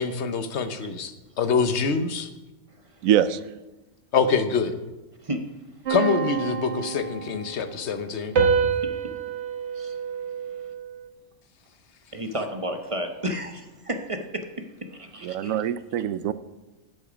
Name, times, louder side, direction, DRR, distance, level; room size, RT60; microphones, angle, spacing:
voice 1, 0.0-2.3 4.1-4.7 5.9-8.3, left 5 dB, 55° left, 9 dB, 1.1 m, -25 dB
voice 2, 3.0-3.4 15.2-16.3, right 10 dB, 75° right, 14 dB, 1.0 m, -23 dB
sound 1, 5.9-7.6 8.4-11.0, right 6 dB, 55° right, 1.5 m, -27 dB
voice 3, 12.1-14.4 14.9-15.6, right 1 dB, 30° right, 5 dB, 0.8 m, -32 dB
12.0 x 8.1 x 5.1 m, 1.1 s
omnidirectional pair, 1.5 m